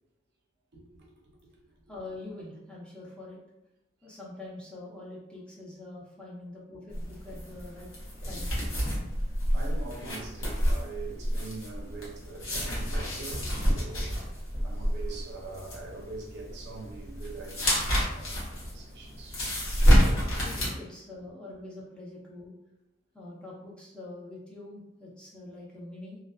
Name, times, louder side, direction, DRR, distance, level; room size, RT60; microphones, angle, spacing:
voice 1, 0.7-1.6 9.2-14.1 14.6-19.4 20.5-20.6, right 3 dB, 55° right, 0.5 m, -43 dB
voice 2, 1.9-3.4 4.0-7.9 8.2-8.5 20.4-22.5 23.1-26.2, left 2 dB, 5° left, 0.5 m, -44 dB
sound 1, 6.9-20.7, equal, 80° left, 0.9 m, -28 dB
2.4 x 2.3 x 2.2 m
head